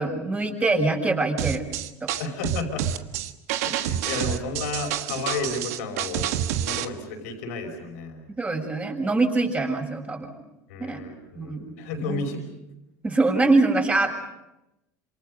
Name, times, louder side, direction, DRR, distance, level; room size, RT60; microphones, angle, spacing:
voice 1, 0.0-1.6 2.0-2.1 8.4-10.3 10.8-11.0 11.4-11.7 12.0-12.2 13.0-14.2, right 3 dB, 20° right, 2 dB, 6.8 m, -24 dB
sound 1, 1.4-6.9, right 11 dB, 85° right, 1.4 m, -28 dB
voice 2, 2.2-2.9 3.6-6.3 6.6-8.2 10.7-12.4, left 3 dB, 85° left, 3 dB, 5.5 m, -32 dB
28.5 x 27.5 x 5.4 m, 0.90 s
supercardioid pair, 100°, 8 cm